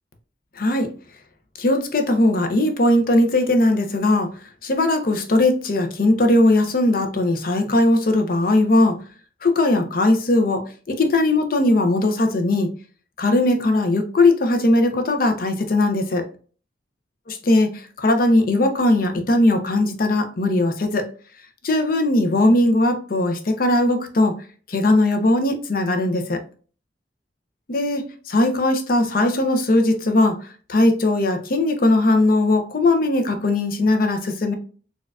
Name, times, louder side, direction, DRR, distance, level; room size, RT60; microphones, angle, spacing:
voice 1, 0.6-0.9 1.6-4.3 4.6-9.0 9.4-12.7 13.2-16.2 17.5-21.1 21.6-24.3 24.7-26.4 27.7-30.4 30.7-34.5, left 2 dB, 55° left, 6 dB, 0.6 m, -19 dB
4.2 x 2.3 x 2.4 m, 0.40 s
head